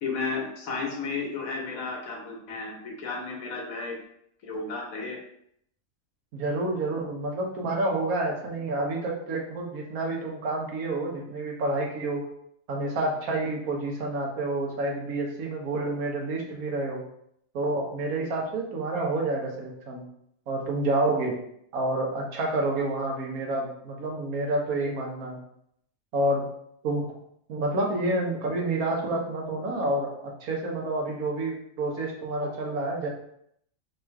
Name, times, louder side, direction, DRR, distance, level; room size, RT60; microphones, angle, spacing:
voice 1, 0.0-4.0 4.4-5.2, left 4 dB, 75° left, 0 dB, 1.4 m, -33 dB
voice 2, 6.3-12.3 12.7-17.0 17.5-20.0 20.5-21.3 21.7-25.4 26.1-26.5 26.8-27.1 27.5-33.1, right 2 dB, 80° right, -1 dB, 1.3 m, -29 dB
3.7 x 2.4 x 4.4 m, 0.71 s
omnidirectional pair, 1.5 m